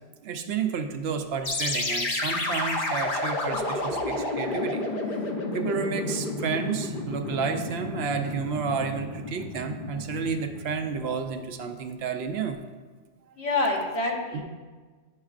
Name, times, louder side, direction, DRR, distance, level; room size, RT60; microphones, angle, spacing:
voice 1, 0.2-4.8 5.5-12.6 14.3-14.4, right 5 dB, 70° right, 6 dB, 0.8 m, -31 dB
sound 1, 1.4-11.0, left 2 dB, 50° left, 0.9 m, -31 dB
voice 2, 3.5-3.9 13.4-14.4, left 2 dB, 70° left, -1 dB, 1.4 m, -28 dB
9.6 x 6.5 x 2.4 m, 1.4 s
omnidirectional pair, 1.2 m